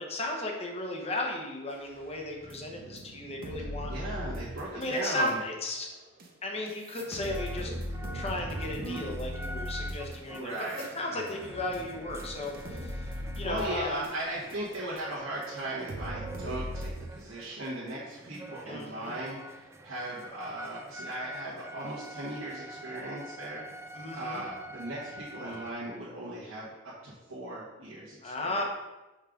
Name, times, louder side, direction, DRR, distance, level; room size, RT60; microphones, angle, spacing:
voice 1, 0.0-3.9 4.7-5.9 6.4-10.5 10.9-13.1 13.3-14.0 18.7-19.1 23.9-24.4 28.2-28.6, left 1 dB, 30° left, 1 dB, 0.9 m, -35 dB
sound 1, 2.0-5.3 6.2-6.3 6.7-15.0 15.4-15.5 15.9-16.9, equal, 45° right, 0.9 m, -38 dB
voice 2, 3.8-5.4 10.3-11.2 13.1-23.6 24.1-28.6, right 1 dB, 85° right, -9 dB, 1.4 m, -38 dB
sound 2, 7.0-25.7, right 1 dB, 15° right, 0.3 m, -46 dB
5.4 x 3.7 x 5.0 m, 1.1 s
head